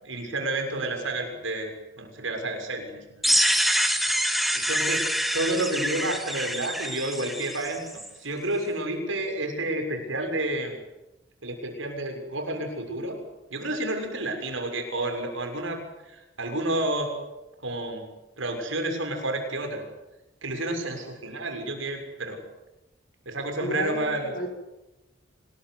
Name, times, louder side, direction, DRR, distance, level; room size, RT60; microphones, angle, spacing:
voice 1, 0.0-1.7 2.0-3.3 4.5-7.9 8.2-10.8 11.4-13.2 13.5-17.1 17.6-18.1 18.4-19.8 20.4-22.4 23.2-24.3, right 1 dB, 70° right, 4 dB, 6.7 m, -30 dB
sound 1, 3.2-8.1, equal, ahead, 2.1 m, -26 dB
voice 2, 23.6-24.5, left 1 dB, 45° left, 3 dB, 5.5 m, -32 dB
26.0 x 20.5 x 9.7 m, 0.97 s
head